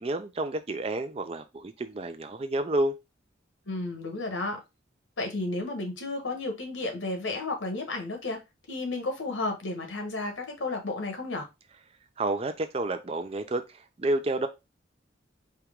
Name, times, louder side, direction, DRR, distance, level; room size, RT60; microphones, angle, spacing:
voice 1, 0.0-3.0 12.2-13.6 14.0-14.5, right 2 dB, 30° right, 0.4 m, -29 dB
voice 2, 3.7-4.6 5.2-8.4 8.7-11.5, left 2 dB, 80° left, 1.3 m, -32 dB
4.6 x 2.9 x 3.5 m
head